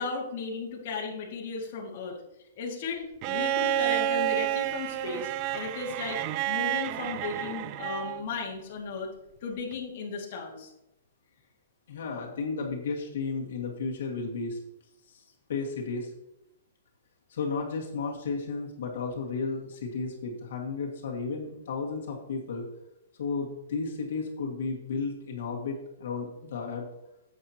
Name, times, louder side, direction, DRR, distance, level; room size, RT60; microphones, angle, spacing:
voice 1, 0.0-2.2 2.6-6.2 6.5-9.1 9.4-10.7, left 4 dB, 45° left, -1 dB, 2.0 m, -35 dB
Bowed string instrument, 3.2-8.3 9.7-9.8, right 12 dB, 30° right, 0.4 m, -30 dB
voice 2, 11.9-14.6 15.0-15.2 15.5-16.1 17.3-22.7 23.2-26.9, left 4 dB, 65° left, 0 dB, 1.9 m, -33 dB
9.9 x 8.1 x 2.9 m, 0.86 s
hypercardioid pair, 165°, 0 cm